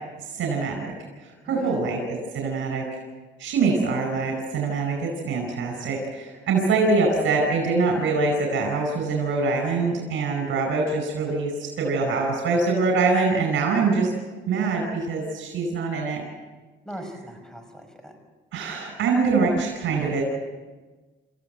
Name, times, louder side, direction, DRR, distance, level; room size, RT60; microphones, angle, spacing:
voice 1, 0.3-0.9 1.2-2.8 3.4-14.1 14.5-16.2 18.5-20.2, right 4 dB, 75° right, 2 dB, 4.9 m, -24 dB
voice 2, 1.5-1.8 16.9-18.1, equal, 5° left, 6 dB, 5.5 m, -40 dB
27.0 x 15.0 x 7.8 m, 1.3 s
cardioid pair, 90°, 20 cm